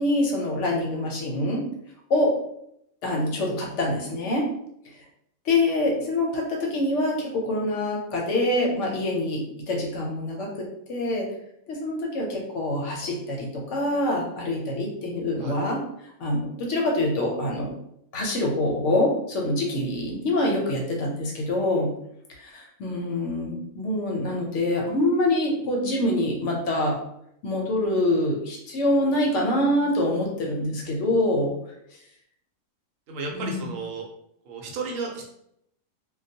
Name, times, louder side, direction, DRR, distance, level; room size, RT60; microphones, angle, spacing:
voice 1, 0.0-1.6 2.1-2.3 3.0-4.5 5.5-11.3 11.7-17.7 18.1-21.9 22.3-27.0 27.4-31.5 33.3-33.8, left 1 dB, 70° left, -1 dB, 0.9 m, -25 dB
voice 2, 33.1-34.1 34.4-35.2, right 3 dB, 75° right, 0 dB, 0.9 m, -33 dB
2.2 x 2.2 x 2.7 m, 0.75 s
omnidirectional pair, 1.4 m